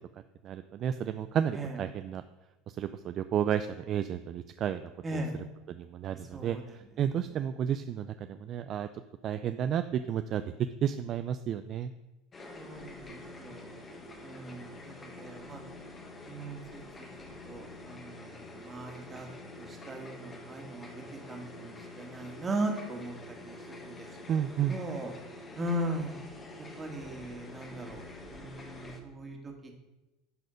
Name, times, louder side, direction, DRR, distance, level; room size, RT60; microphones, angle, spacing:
voice 1, 0.4-2.2 2.7-8.9 9.2-11.9 24.3-24.8, right 9 dB, 45° right, 10 dB, 0.4 m, -32 dB
sound 1, 12.3-29.0, left 2 dB, 25° left, 1.4 m, -47 dB
voice 2, 12.6-13.7 14.2-15.6 16.3-17.1 17.5-19.3 19.6-20.9 21.3-23.1 23.4-23.9 24.7-25.1 25.6-26.1 26.8-28.0 28.3-29.5, right 1 dB, 25° right, 2 dB, 1.9 m, -38 dB
11.0 x 4.2 x 5.1 m, 1.0 s
supercardioid pair, 100°, 0 cm